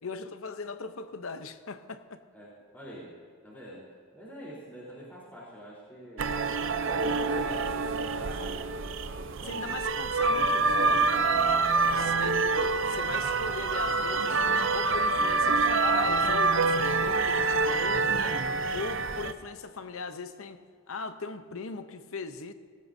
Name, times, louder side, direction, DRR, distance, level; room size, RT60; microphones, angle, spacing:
voice 1, 0.0-2.2 9.5-11.4 12.0-14.4 14.7-18.4 18.7-20.6 20.9-22.5, left 4 dB, 70° left, 10 dB, 0.8 m, -39 dB
voice 2, 2.3-3.1 3.4-3.9 4.1-6.4 7.0-8.7 9.2-9.7 11.6-12.0 18.6-18.8, equal, 10° left, -7 dB, 3.8 m, -46 dB
sound 1, 6.2-19.3, right 3 dB, 60° right, 0.6 m, -26 dB
19.0 x 17.5 x 2.7 m, 2.1 s
head